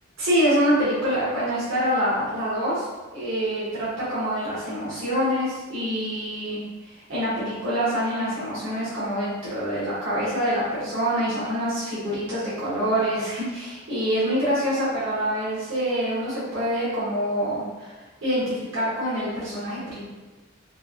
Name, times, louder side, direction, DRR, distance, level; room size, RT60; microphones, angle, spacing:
voice 1, 0.2-2.9 3.1-6.6 6.9-17.9 18.2-20.0, equal, 65° right, -9 dB, 1.0 m, -25 dB
4.2 x 2.4 x 2.4 m, 1.3 s
head